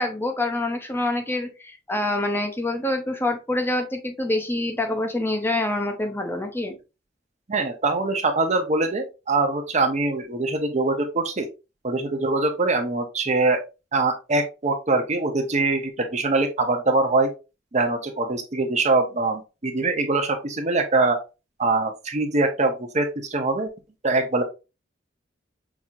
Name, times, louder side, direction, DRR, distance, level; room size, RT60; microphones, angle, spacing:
voice 1, 0.0-6.8, left 2 dB, 10° left, 4 dB, 0.6 m, -26 dB
voice 2, 7.5-11.5 11.8-13.6 13.9-17.3 17.7-21.2 21.6-23.7 24.0-24.4, right 3 dB, 40° right, 5 dB, 0.7 m, -23 dB
5.9 x 2.8 x 2.4 m, 0.28 s
head